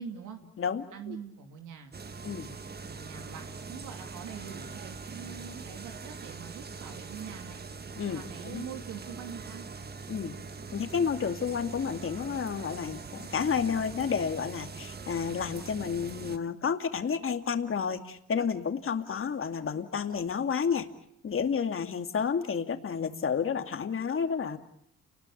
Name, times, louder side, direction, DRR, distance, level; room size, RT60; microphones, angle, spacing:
voice 1, 0.0-0.4 0.9-2.3 2.8-7.6 8.0-9.6, right 7 dB, 90° right, 5 dB, 2.8 m, -44 dB
voice 2, 0.6-1.2 2.2-2.5 8.0-8.6 10.1-10.3 10.7-20.9 21.2-24.6, left 6 dB, 45° left, 7 dB, 2.5 m, -31 dB
sound 1, 1.9-16.4, right 4 dB, 30° right, 1.7 m, -42 dB
29.5 x 20.5 x 8.6 m, 0.74 s
cardioid pair, 90°, 30 cm